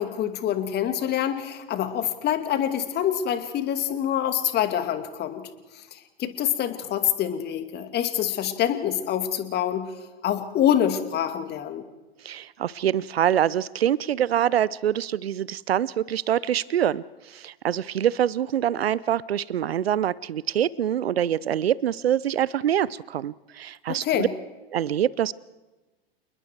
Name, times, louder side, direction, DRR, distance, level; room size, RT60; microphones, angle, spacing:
voice 1, 0.0-5.4 5.9-9.9 10.2-11.8 23.9-24.3, left 10 dB, 35° left, 8 dB, 2.4 m, -26 dB
voice 2, 12.2-24.3 24.7-25.3, right 10 dB, 80° right, 22 dB, 0.6 m, -25 dB
29.0 x 21.0 x 4.7 m, 1.1 s
hypercardioid pair, 100°, 30 cm